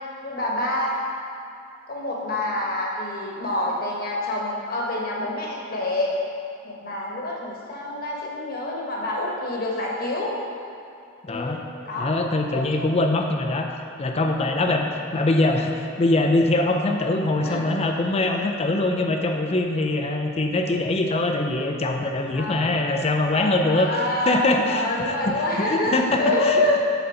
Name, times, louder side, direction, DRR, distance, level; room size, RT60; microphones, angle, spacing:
voice 1, 0.2-1.0 1.9-6.1 6.6-10.4 11.3-12.1 12.5-12.7 14.3-14.4 17.4-17.6 22.3-22.6 23.7-26.8, left 1 dB, 45° left, -2 dB, 1.2 m, -27 dB
voice 2, 11.3-11.6 12.0-13.7 14.0-23.9 24.3-26.8, left 2 dB, 30° left, 3 dB, 0.5 m, -23 dB
8.5 x 4.0 x 5.6 m, 2.5 s
head